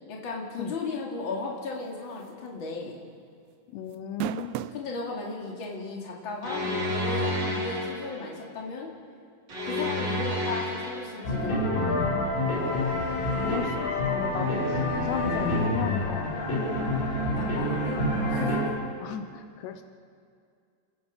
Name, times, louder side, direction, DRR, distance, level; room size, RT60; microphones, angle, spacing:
voice 1, 0.1-3.0 4.7-8.9 9.6-11.6 17.4-18.5, left 3 dB, 35° left, -2 dB, 2.9 m, -35 dB
sound 1, 2.2-2.5 2.8-2.9 3.9-4.9 5.6-5.7 7.3-7.4, right 12 dB, 90° right, 2.8 m, -33 dB
voice 2, 3.7-4.5 12.5-17.0 19.0-19.8, left 9 dB, 85° left, 8 dB, 3.0 m, -36 dB
sound 2, 6.4-8.2 9.5-11.2, left 1 dB, 30° right, 3.4 m, -30 dB
sound 3, 11.2-18.6, left 1 dB, 65° left, 7.3 m, -27 dB
30.0 x 16.5 x 5.3 m, 2.3 s
omnidirectional pair, 4.8 m